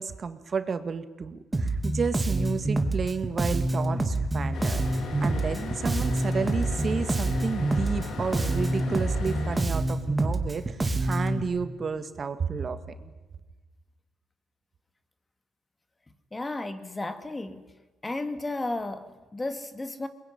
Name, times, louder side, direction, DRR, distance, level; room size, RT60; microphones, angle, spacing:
voice 1, 0.0-4.8 5.2-13.1, right 5 dB, 45° right, 1.7 m, -31 dB
Bass guitar, 1.5-11.4, right 2 dB, 20° right, 2.7 m, -27 dB
sound 1, 4.5-9.6, left 4 dB, 65° left, 3.7 m, -37 dB
voice 2, 16.3-17.6 18.0-20.1, left 2 dB, 20° left, 2.1 m, -33 dB
22.5 x 21.5 x 9.9 m
cardioid pair, 90°, 0 cm